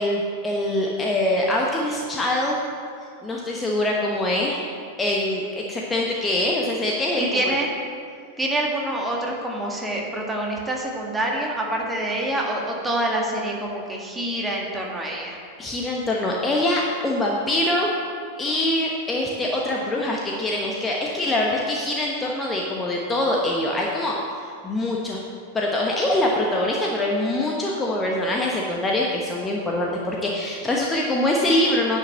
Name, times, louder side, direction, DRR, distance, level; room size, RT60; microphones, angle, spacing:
voice 1, 0.0-2.6 3.2-4.6 5.0-7.6 15.6-17.9 18.4-24.2 24.6-25.2 25.5-32.0, left 1 dB, 15° left, -2 dB, 1.1 m, -24 dB
voice 2, 7.2-7.7 8.4-15.4, right 1 dB, 10° right, -1 dB, 1.8 m, -26 dB
10.0 x 5.5 x 7.2 m, 2.2 s
figure-of-eight pair, 90°, 0 cm